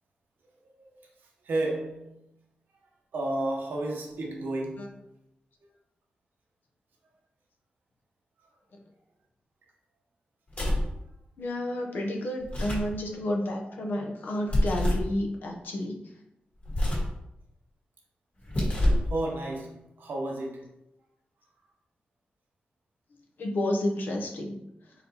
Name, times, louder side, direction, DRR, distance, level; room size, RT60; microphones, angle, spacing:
voice 1, 1.4-2.2 3.1-5.0 10.8-10.9 19.1-20.7, right 2 dB, 85° right, 0.9 m, -32 dB
sound 1, 10.5-11.0 12.4-12.9 14.5-15.1 16.6-17.2 18.4-19.1, left 1 dB, 45° left, 1.4 m, -26 dB
voice 2, 11.4-16.0 23.4-24.6, left 1 dB, 80° left, 0.7 m, -30 dB
4.1 x 4.0 x 2.8 m
wide cardioid pair, 155°, 3 cm